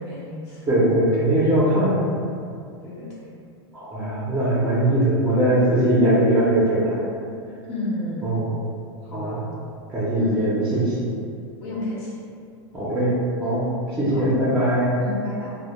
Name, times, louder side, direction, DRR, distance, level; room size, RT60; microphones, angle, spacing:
voice 1, 0.0-0.6 2.8-3.1 7.6-8.3 9.0-9.4 10.1-10.3 11.6-12.1 14.1-14.3 15.0-15.5, left 2 dB, 80° left, -7 dB, 0.9 m, -31 dB
voice 2, 0.7-2.0 3.7-7.0 8.2-8.5 9.1-9.4 9.9-11.0 12.7-13.1 13.4-13.6 14.0-14.9, right 1 dB, 10° right, -10 dB, 0.5 m, -20 dB
2.1 x 2.1 x 2.9 m, 2.3 s
supercardioid pair, 135°, 14 cm